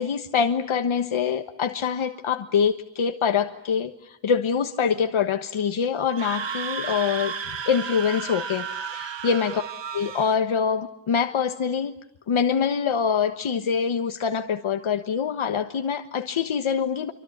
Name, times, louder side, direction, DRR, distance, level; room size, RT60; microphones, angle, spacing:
voice 1, 0.0-7.3 7.6-9.6 9.9-11.9 12.3-17.1, left 6 dB, 75° left, 6 dB, 1.4 m, -25 dB
Screaming, 6.0-10.4, right 5 dB, 60° right, 1.7 m, -33 dB
27.5 x 25.0 x 8.7 m, 0.77 s
wide cardioid pair, 180°, 49 cm